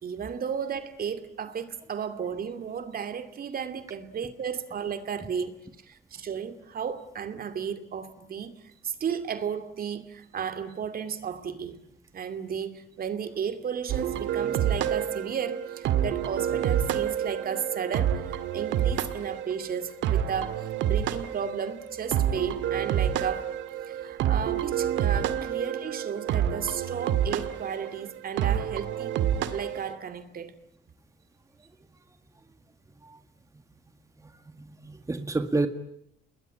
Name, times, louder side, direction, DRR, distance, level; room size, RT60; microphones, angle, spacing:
voice 1, 0.0-5.6 5.9-11.8 12.1-23.6 23.9-29.1 29.5-30.5, right 7 dB, 55° right, 2.7 m, -34 dB
sound 1, 13.9-29.9, right 10 dB, 85° right, 2.0 m, -28 dB
voice 2, 34.2-35.7, right 2 dB, 15° right, 1.9 m, -30 dB
29.5 x 21.0 x 9.0 m
cardioid pair, 95°, 19 cm